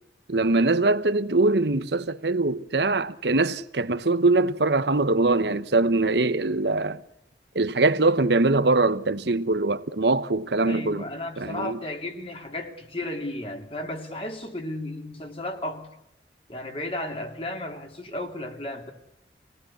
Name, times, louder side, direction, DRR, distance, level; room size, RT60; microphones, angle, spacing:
voice 1, 0.3-7.0 7.5-11.1 11.4-11.8, right 2 dB, 80° right, 1.1 m, -22 dB
voice 2, 10.6-15.9 16.5-18.9, left 1 dB, 30° left, 3.0 m, -34 dB
27.5 x 18.5 x 8.6 m
head